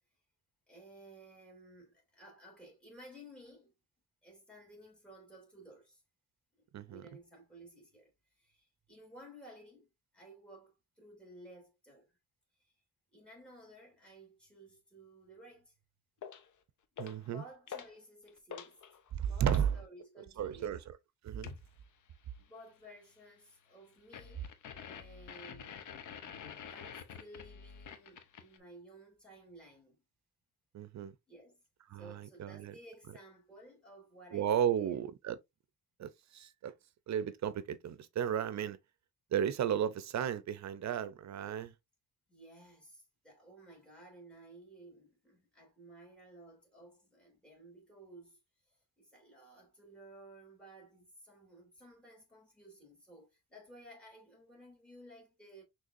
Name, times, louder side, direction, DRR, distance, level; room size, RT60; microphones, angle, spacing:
voice 1, 0.7-3.7 4.2-6.0 6.5-9.9 10.1-12.2 12.6-12.7 13.1-15.8 17.2-18.8 19.1-20.8 22.4-24.5 24.8-25.9 26.7-30.0 31.3-31.6 31.9-35.0 42.3-48.4 48.7-55.6, right 1 dB, 5° left, 2.9 m, -56 dB
sound 1, 16.2-16.5 17.0-17.3 17.7-18.0 18.3-19.7 21.4-21.7 24.1-28.6, left 7 dB, 70° left, 0.8 m, -47 dB
voice 2, 17.0-17.4 19.1-19.7 20.4-21.0 21.2-21.5 30.7-31.1 31.9-32.7 34.3-35.4 36.0-36.7 37.1-38.8 39.3-41.7, right 9 dB, 65° right, 0.6 m, -34 dB
6.3 x 3.3 x 2.6 m
cardioid pair, 105°, 31 cm